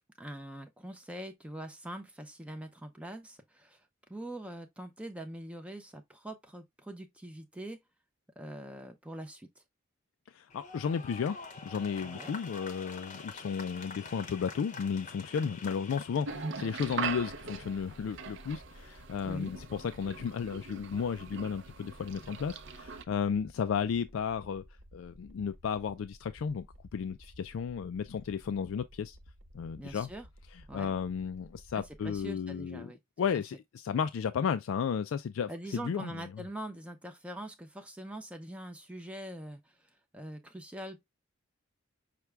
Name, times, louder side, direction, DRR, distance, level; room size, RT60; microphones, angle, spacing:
voice 1, 0.2-3.8 4.1-7.8 8.4-9.6 12.0-12.3 19.2-19.5 29.7-30.3 30.7-30.9 31.7-33.0 35.5-39.7 40.1-41.1, right 1 dB, 5° right, 0.5 m, -43 dB
voice 2, 10.3-24.6 24.9-26.7 26.9-29.2 29.5-30.1 30.5-32.9 33.2-36.4, left 7 dB, 75° left, 0.3 m, -34 dB
sound 1, 10.5-16.4, left 4 dB, 35° left, 0.7 m, -46 dB
sound 2, 16.3-23.0, right 5 dB, 60° right, 0.5 m, -41 dB
sound 3, 16.8-32.3, equal, 80° right, 1.1 m, -55 dB
5.9 x 2.2 x 3.2 m
head